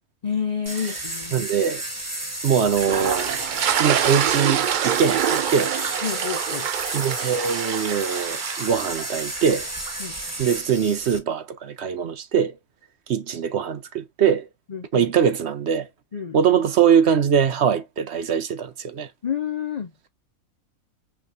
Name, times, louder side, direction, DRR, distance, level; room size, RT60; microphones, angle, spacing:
voice 1, 0.2-1.5 6.0-6.7 10.0-10.1 14.7-15.1 16.1-16.4 19.2-19.9, left 7 dB, 60° left, 0.4 m, -29 dB
sound 1, 0.7-11.2, right 1 dB, 10° right, 1.2 m, -32 dB
voice 2, 1.3-1.8 2.4-3.3 3.8-5.7 6.9-9.7 10.4-12.6 13.1-14.5 14.9-15.9 16.3-19.1, right 7 dB, 55° right, 0.9 m, -22 dB
sound 2, 2.8-10.1, right 9 dB, 85° right, 0.4 m, -26 dB
6.0 x 3.2 x 2.5 m
omnidirectional pair, 1.5 m